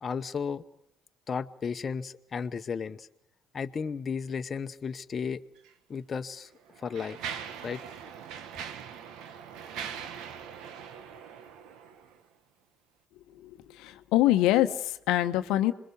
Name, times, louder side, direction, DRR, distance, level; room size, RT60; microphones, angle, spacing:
voice 1, 0.0-0.6 1.3-3.1 3.5-5.4 5.9-6.5 6.8-7.2 7.6-7.8, left 6 dB, 45° left, 8 dB, 0.9 m, -34 dB
Mechanisms, 5.6-5.7 6.4-12.2, right 8 dB, 75° right, 1.3 m, -41 dB
voice 2, 13.8-15.7, left 14 dB, 75° left, 9 dB, 0.9 m, -24 dB
26.5 x 21.0 x 7.0 m, 0.79 s
hypercardioid pair, 55°, 0 cm